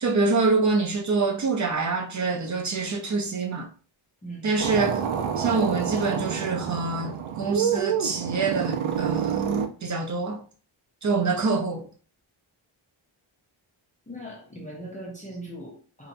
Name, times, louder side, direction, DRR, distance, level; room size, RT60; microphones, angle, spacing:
voice 1, 0.0-3.7 4.4-5.0 5.4-9.4 9.8-10.4 11.0-11.9, right 4 dB, 35° right, 0.5 m, -25 dB
voice 2, 4.2-4.6 14.1-16.1, right 1 dB, 15° left, 0.5 m, -39 dB
sound 1, 4.6-9.7, right 8 dB, 80° right, 0.5 m, -28 dB
2.7 x 2.1 x 2.6 m
wide cardioid pair, 120°, 49 cm